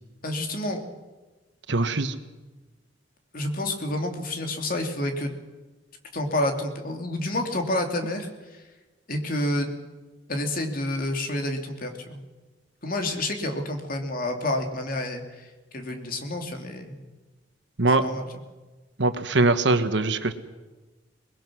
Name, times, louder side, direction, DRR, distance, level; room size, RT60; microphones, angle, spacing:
voice 1, 0.2-0.9 3.3-5.3 6.1-8.6 9.1-9.7 10.3-12.2 12.8-16.9 18.0-18.3, left 1 dB, 50° left, 4 dB, 2.8 m, -29 dB
voice 2, 1.7-2.1 17.8-18.0 19.0-20.3, right 2 dB, 75° right, 10 dB, 1.3 m, -22 dB
23.5 x 20.5 x 6.3 m, 1.2 s
head